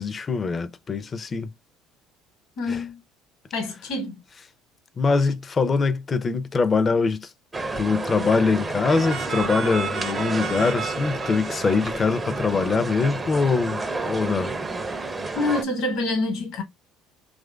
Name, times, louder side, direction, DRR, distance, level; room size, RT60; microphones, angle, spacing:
voice 1, 0.0-1.5 2.7-2.8 5.0-7.3 7.8-14.5, left 4 dB, 35° left, 0.5 m, -23 dB
voice 2, 2.6-3.0 3.5-4.2 15.3-16.6, left 2 dB, 65° left, 1.1 m, -26 dB
sound 1, 7.5-15.6, right 3 dB, 20° right, 0.5 m, -30 dB
sound 2, 8.9-13.4, right 6 dB, 50° right, 0.7 m, -34 dB
3.0 x 2.5 x 2.2 m
hypercardioid pair, 75°, 0 cm